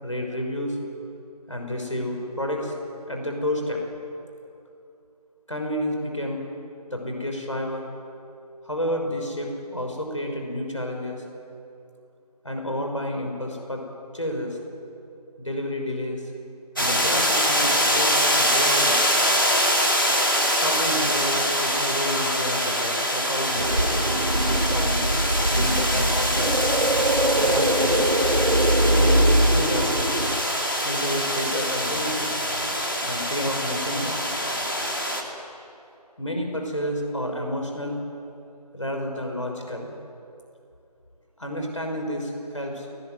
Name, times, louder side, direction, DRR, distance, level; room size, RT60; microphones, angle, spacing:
voice 1, 0.0-0.8 1.5-2.7 3.1-3.8 5.5-6.5 6.9-7.8 8.6-11.2 12.4-13.8 14.1-14.6 15.4-16.2 16.8-19.0 20.5-23.7 24.4-25.1 25.5-26.6 27.4-28.1 28.9-29.9 30.8-32.3 33.0-34.2 36.2-38.0 38.7-39.9 41.4-42.9, left 1 dB, 50° left, 2 dB, 5.9 m, -30 dB
sound 1, 16.8-35.2, equal, 30° left, 2.4 m, -24 dB
sound 2, 23.5-30.4, right 1 dB, 60° right, 1.2 m, -22 dB
27.0 x 19.0 x 9.4 m, 2.6 s
figure-of-eight pair, 175°, 21 cm